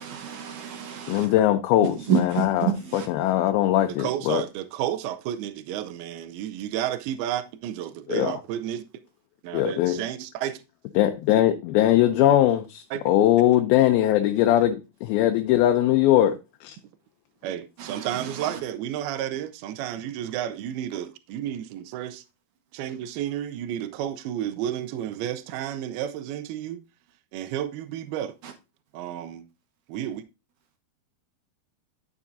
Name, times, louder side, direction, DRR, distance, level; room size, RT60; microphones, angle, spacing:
voice 1, 0.0-1.3 2.1-3.1 17.8-18.6, right 7 dB, 65° right, 2.3 m, -29 dB
voice 2, 1.1-4.4 8.1-8.4 9.5-10.0 11.0-16.8, left 13 dB, 80° left, 2.5 m, -21 dB
voice 3, 4.0-8.8 9.4-10.6 12.9-13.0 17.4-22.2 22.7-26.8 27.3-28.3 28.9-29.5 29.9-30.2, right 11 dB, 85° right, 2.5 m, -31 dB
11.0 x 7.2 x 2.6 m
omnidirectional pair, 4.4 m